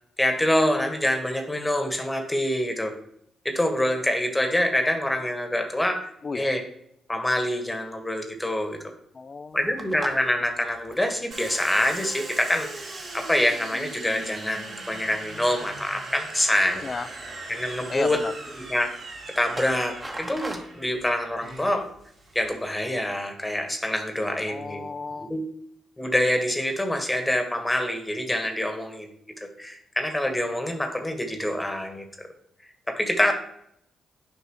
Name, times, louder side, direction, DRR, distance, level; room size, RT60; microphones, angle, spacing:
voice 1, 0.2-2.9 3.4-6.0 6.3-6.6 7.1-8.8 9.5-16.9 17.5-18.2 18.6-18.9 19.3-21.9 22.3-24.8 25.2-25.4 26.0-29.1 29.6-32.0 32.9-33.3, left 1 dB, 15° left, 5 dB, 1.6 m, -26 dB
voice 2, 9.1-9.6 16.8-17.1 17.9-18.3 24.4-25.3, left 4 dB, 45° left, 15 dB, 0.4 m, -32 dB
sound 1, 9.5-13.5 13.9-14.5 14.8-16.1 16.7-17.3 17.6-17.7 18.0-20.6, right 1 dB, 20° right, 1.7 m, -43 dB
Domestic sounds home sounds, 11.3-22.7, right 2 dB, 60° right, 3.4 m, -40 dB
9.5 x 5.4 x 3.2 m, 0.72 s
hypercardioid pair, 45°, 0 cm